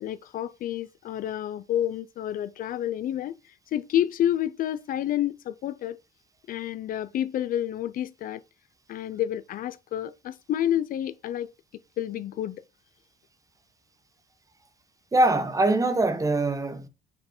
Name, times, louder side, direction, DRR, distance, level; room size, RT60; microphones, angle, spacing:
voice 1, 0.0-3.3 3.7-6.0 6.5-8.4 8.9-11.5 12.0-12.6, left 11 dB, 55° left, 0.4 m, -29 dB
voice 2, 15.1-16.9, right 2 dB, 20° right, 1.0 m, -23 dB
5.4 x 4.5 x 4.4 m
cardioid pair, 110°, 17 cm